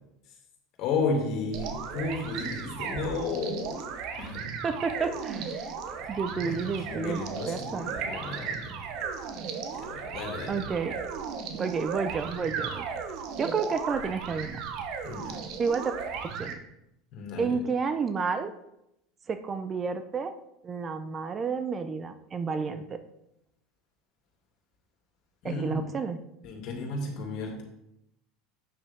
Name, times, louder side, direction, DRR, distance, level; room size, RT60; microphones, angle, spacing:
voice 1, 0.8-4.4 6.4-8.7 9.7-10.6 15.0-15.4 17.1-17.6 25.4-25.9 26.4-27.6, left 3 dB, 55° left, 1 dB, 2.5 m, -33 dB
sound 1, 1.5-16.5, right 6 dB, 60° right, 1.1 m, -36 dB
voice 2, 4.6-5.7 6.1-7.2 7.5-7.9 10.5-10.9 11.5-12.9 13.4-14.6 15.6-15.9 16.2-16.6 17.4-18.5 19.3-20.3 20.6-23.0 25.4-26.2, right 5 dB, 30° right, 10 dB, 0.7 m, -30 dB
8.7 x 6.6 x 3.6 m, 0.82 s
supercardioid pair, 100°, 0 cm